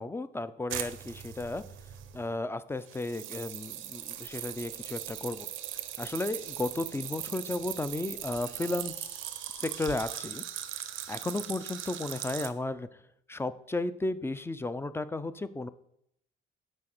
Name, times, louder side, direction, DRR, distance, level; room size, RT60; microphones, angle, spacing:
voice 1, 0.0-1.6 2.1-5.5 6.0-10.4 11.1-12.9 13.3-15.7, left 2 dB, 10° left, 14 dB, 0.4 m, -34 dB
sound 1, 0.7-2.3 2.9-12.5, right 11 dB, 85° right, 0.6 m, -39 dB
6.2 x 4.0 x 6.0 m, 0.74 s
cardioid pair, 90°, 20 cm